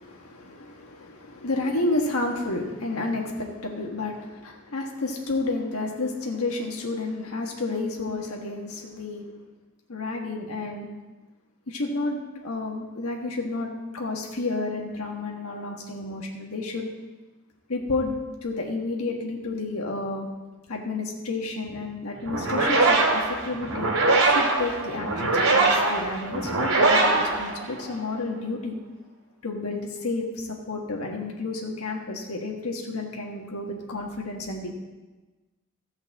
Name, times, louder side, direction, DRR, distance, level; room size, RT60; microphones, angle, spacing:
voice 1, 0.0-9.2 9.9-10.9 11.7-16.9 17.7-18.1 18.4-20.3 20.7-23.9 24.2-28.7 29.4-34.8, left 2 dB, 80° left, 0 dB, 1.5 m, -31 dB
sound 1, 22.2-28.1, right 3 dB, 75° right, 2.5 m, -22 dB
14.5 x 5.4 x 7.3 m, 1.2 s
head